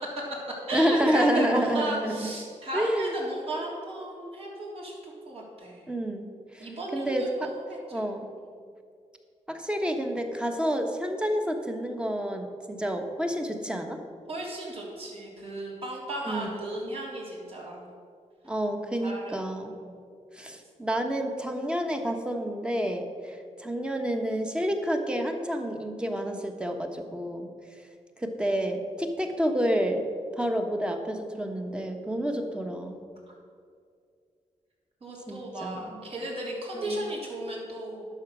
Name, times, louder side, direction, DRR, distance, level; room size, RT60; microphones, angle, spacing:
voice 1, 0.0-5.8 6.6-7.6 7.9-8.1 14.3-17.9 18.5-18.6 19.0-20.0 35.0-38.1, right 1 dB, 50° right, -3 dB, 3.3 m, -35 dB
voice 2, 0.7-2.3 2.7-3.1 5.9-7.5 7.9-8.2 9.5-14.0 16.3-16.5 18.4-19.7 20.3-27.5 28.2-30.1 30.4-33.0 35.3-36.0 36.8-37.0, equal, 10° right, 4 dB, 1.2 m, -29 dB
11.0 x 7.2 x 6.2 m, 2.2 s
cardioid pair, 105°, 13 cm